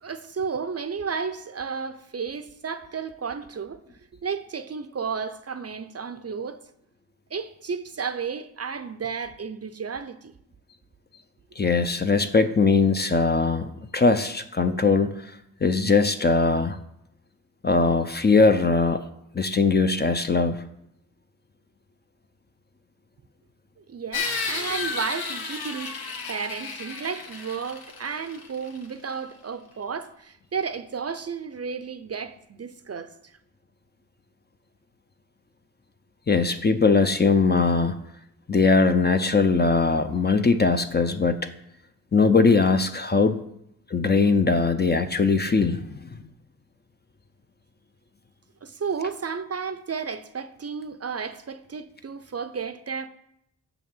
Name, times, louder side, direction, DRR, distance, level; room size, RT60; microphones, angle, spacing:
voice 1, 0.0-3.8 4.2-6.6 7.3-10.3 23.9-26.0 26.3-33.3 48.6-53.1, right 6 dB, 40° right, 0.6 m, -33 dB
voice 2, 11.6-15.1 15.6-16.8 17.6-19.0 19.3-20.6 36.3-37.9 38.5-41.4 42.1-43.4 43.9-46.1, left 4 dB, 25° left, 0.6 m, -20 dB
sound 1, 24.1-28.8, left 4 dB, 70° left, 1.4 m, -32 dB
6.7 x 6.0 x 7.2 m
cardioid pair, 80°, 38 cm